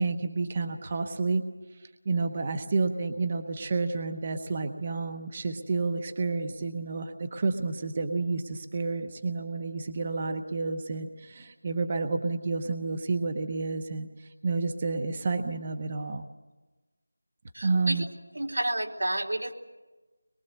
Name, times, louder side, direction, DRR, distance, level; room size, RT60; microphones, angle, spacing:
voice 1, 0.0-1.4 1.8-16.2 17.6-18.0, right 3 dB, 25° right, 7 dB, 1.0 m, -30 dB
voice 2, 17.5-18.1 18.3-19.5, right 1 dB, 75° right, 1 dB, 3.8 m, -30 dB
24.5 x 23.0 x 8.1 m, 1.2 s
figure-of-eight pair, 175°, 0 cm